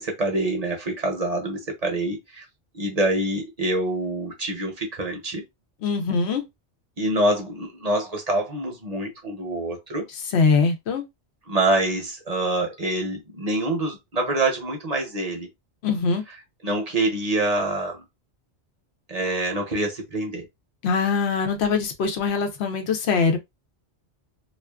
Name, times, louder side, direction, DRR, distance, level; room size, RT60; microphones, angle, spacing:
voice 1, 0.0-2.5 2.7-5.4 7.0-10.1 11.5-15.5 16.6-18.0 19.1-20.4, right 1 dB, 40° right, 0.7 m, -26 dB
voice 2, 5.8-6.4 10.3-11.0 15.8-16.2 20.8-23.4, left 5 dB, 70° left, 0.9 m, -22 dB
2.4 x 2.4 x 2.2 m
omnidirectional pair, 1.1 m